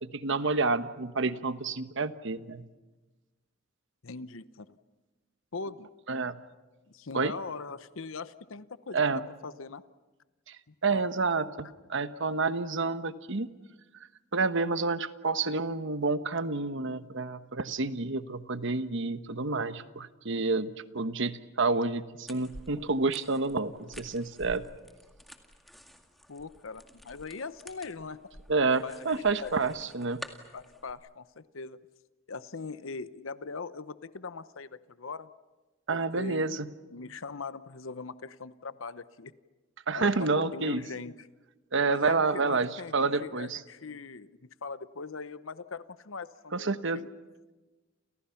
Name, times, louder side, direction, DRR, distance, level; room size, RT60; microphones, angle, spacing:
voice 1, 0.0-2.7 6.1-6.4 7.1-7.3 8.9-9.3 10.5-10.6 10.8-13.5 14.3-24.7 28.5-30.2 35.9-36.7 39.9-40.8 41.7-43.6 46.5-47.0, right 3 dB, 65° right, 12 dB, 1.2 m, -29 dB
voice 2, 4.0-4.8 5.5-5.9 6.9-9.0 9.4-9.8 10.7-11.1 26.3-28.2 28.8-29.6 30.5-31.8 32.3-35.3 35.9-36.5 36.9-39.3 39.9-41.3 41.8-46.7 46.9-47.1, left 4 dB, 80° left, 14 dB, 0.9 m, -41 dB
sound 1, 22.3-30.9, equal, ahead, 2.0 m, -50 dB
30.0 x 29.0 x 5.8 m, 1.2 s
head